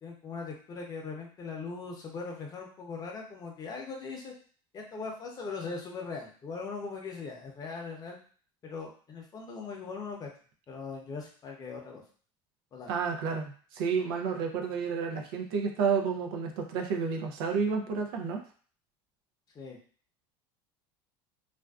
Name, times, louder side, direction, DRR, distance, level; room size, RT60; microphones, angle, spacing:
voice 1, 0.0-4.3 4.7-8.2 8.6-10.3 10.7-12.0 12.7-12.9 19.5-19.8, left 4 dB, 30° left, 0 dB, 0.6 m, -40 dB
voice 2, 12.9-18.4, right 5 dB, 85° right, 3 dB, 0.5 m, -30 dB
2.5 x 2.2 x 2.3 m, 0.43 s
supercardioid pair, 125°, 12 cm